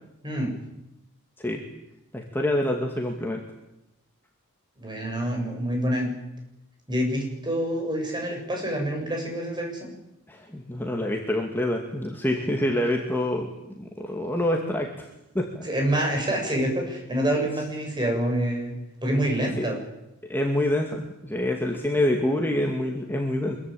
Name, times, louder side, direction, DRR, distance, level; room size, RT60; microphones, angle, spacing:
voice 1, 2.1-3.4 10.3-15.1 15.3-15.6 19.1-19.2 19.6-19.7 20.2-23.6, left 1 dB, 10° left, 1 dB, 2.5 m, -26 dB
voice 2, 4.8-6.1 6.9-9.9 15.6-18.8 19.0-19.8, right 1 dB, 20° right, 2 dB, 7.6 m, -27 dB
25.5 x 22.5 x 8.9 m, 0.90 s
head